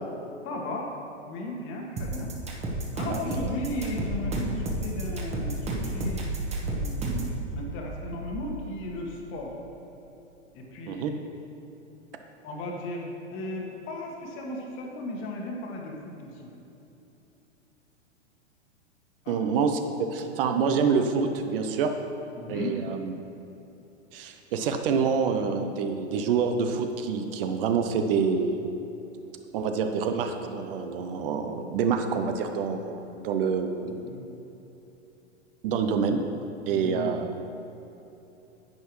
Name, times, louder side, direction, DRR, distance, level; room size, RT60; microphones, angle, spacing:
voice 1, 0.4-0.9 1.3-2.3 2.9-6.3 6.6-9.5 10.5-11.2 12.4-13.0 13.3-16.5 19.2-19.4 22.3-22.8 33.8-34.2 36.7-37.1, left 1 dB, 35° left, 0 dB, 1.6 m, -36 dB
sound 1, 2.0-7.3, right 2 dB, 20° right, 1.3 m, -31 dB
sound 2, 3.6-9.6, right 1 dB, 70° left, 1.0 m, -36 dB
voice 2, 19.3-21.9 22.5-23.1 24.1-28.7 29.5-34.0 35.6-36.2 36.7-37.3, right 5 dB, 50° right, 6 dB, 0.8 m, -27 dB
10.5 x 8.1 x 3.2 m, 3.0 s
hypercardioid pair, 105°, 35 cm